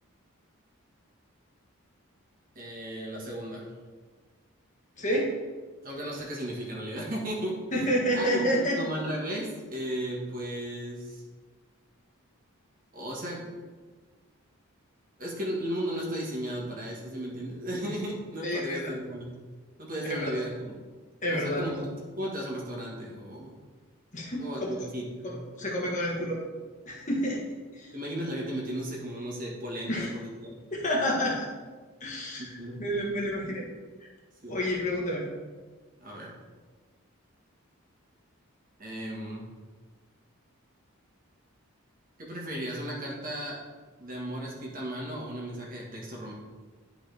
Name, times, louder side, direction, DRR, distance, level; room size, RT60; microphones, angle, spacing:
voice 1, 2.5-3.7 5.8-11.2 12.9-13.5 15.2-19.4 19.8-20.7 21.3-21.8 22.2-23.6 24.4-25.4 27.9-30.5 32.6-32.8 34.4-34.6 36.0-36.3 38.8-39.5 42.2-43.6 44.0-46.3, equal, 40° right, -3 dB, 1.6 m, -35 dB
voice 2, 5.0-5.3 7.7-8.8 18.4-18.9 20.0-20.4 21.2-21.9 24.1-24.9 25.6-26.4 26.8-27.4 27.7-27.9 29.9-30.1 30.7-31.5 32.0-33.6 34.0-34.1 34.5-35.2, equal, 35° left, -2 dB, 1.4 m, -29 dB
11.0 x 5.0 x 3.5 m, 1.4 s
head